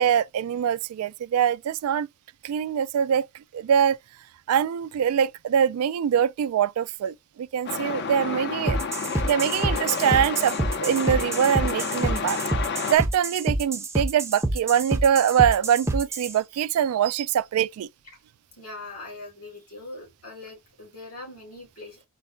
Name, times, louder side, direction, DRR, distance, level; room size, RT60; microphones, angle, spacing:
voice 1, 0.0-2.1 2.4-3.3 3.5-4.0 4.5-8.8 9.2-12.4 12.9-17.9, right 8 dB, 80° right, 0.3 m, -23 dB
Truck, 7.7-13.0, left 5 dB, 50° left, 0.6 m, -30 dB
sound 1, 8.7-16.3, right 1 dB, 10° right, 0.5 m, -27 dB
voice 2, 18.6-22.0, left 2 dB, 85° left, 2.9 m, -41 dB
4.5 x 2.1 x 3.8 m
head